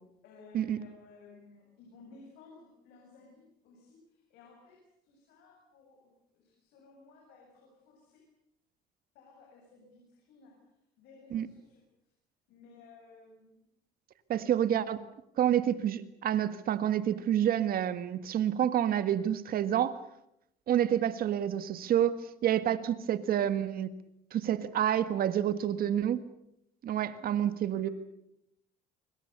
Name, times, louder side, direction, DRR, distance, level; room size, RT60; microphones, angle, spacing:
voice 1, 0.2-6.0 6.3-8.2 9.1-10.6 11.0-11.8 12.5-13.6 24.5-26.1 27.1-27.9, left 3 dB, 90° left, -1 dB, 7.8 m, -57 dB
voice 2, 14.3-15.0 15.4-20.0 20.7-22.2 22.4-23.9 24.3-26.2 26.8-27.9, right 10 dB, 60° right, 12 dB, 1.8 m, -28 dB
25.5 x 25.0 x 6.9 m, 0.79 s
cardioid pair, 110°, 17 cm